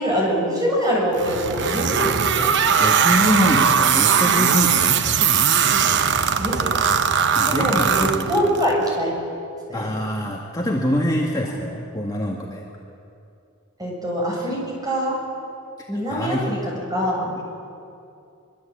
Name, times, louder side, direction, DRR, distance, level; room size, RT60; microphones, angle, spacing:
voice 1, 0.0-2.5 5.8-6.1 6.4-6.8 7.5-9.2 9.7-9.9 13.8-15.2 15.9-17.3, equal, 20° right, -2 dB, 7.2 m, -24 dB
sound 1, 1.2-8.7, right 7 dB, 55° right, 1.0 m, -19 dB
voice 2, 2.8-5.3 7.4-8.5 9.7-12.6 15.8-16.6 17.4-17.5, equal, 15° left, -2 dB, 2.0 m, -25 dB
25.0 x 22.5 x 8.7 m, 2.6 s
head